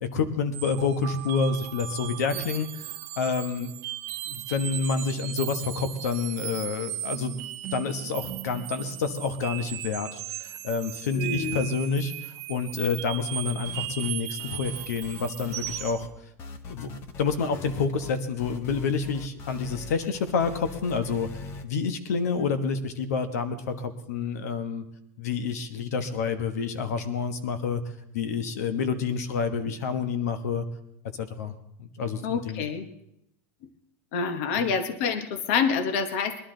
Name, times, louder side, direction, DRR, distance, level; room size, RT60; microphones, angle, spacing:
voice 1, 0.0-2.8 3.2-3.7 4.3-7.3 7.7-16.1 16.7-16.9 17.2-24.8 25.2-27.8 28.1-30.6 31.2-31.5 31.8-32.7 34.6-34.7, left 5 dB, 90° left, 10 dB, 1.3 m, -28 dB
sound 1, 0.5-16.0, right 16 dB, 40° right, 0.9 m, -37 dB
voice 2, 11.1-11.6 32.2-32.9 34.1-36.5, left 6 dB, 55° left, 9 dB, 1.2 m, -27 dB
sound 2, 13.6-14.1 14.4-16.1 16.4-21.6, left 4 dB, 30° left, 0.9 m, -42 dB
21.5 x 11.5 x 3.9 m, 0.78 s
supercardioid pair, 160°, 8 cm